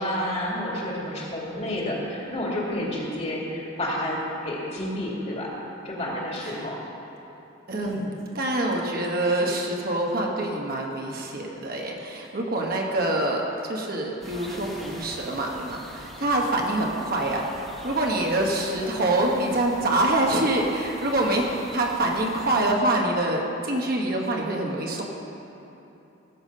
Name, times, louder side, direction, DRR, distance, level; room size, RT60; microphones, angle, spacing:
voice 1, 0.0-5.6 5.8-6.8 7.8-8.1, left 1 dB, 30° left, -4 dB, 2.2 m, -30 dB
voice 2, 7.7-8.1 8.3-25.0, right 1 dB, 45° right, 0 dB, 1.3 m, -25 dB
sound 1, 14.2-22.7, equal, ahead, 1.5 m, -44 dB
17.5 x 7.2 x 5.4 m, 3.0 s
head